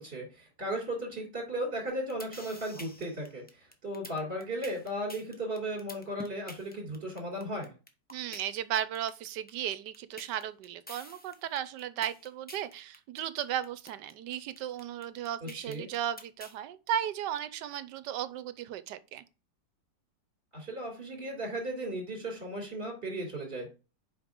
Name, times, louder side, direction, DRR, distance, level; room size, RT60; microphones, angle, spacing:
voice 1, 0.0-7.7 15.4-15.9 20.5-23.7, right 1 dB, 35° right, 3.3 m, -36 dB
sound 1, 1.9-16.6, left 1 dB, 10° left, 0.7 m, -48 dB
voice 2, 8.1-19.2, right 10 dB, 80° right, 1.3 m, -35 dB
7.9 x 5.3 x 3.7 m
omnidirectional pair, 1.9 m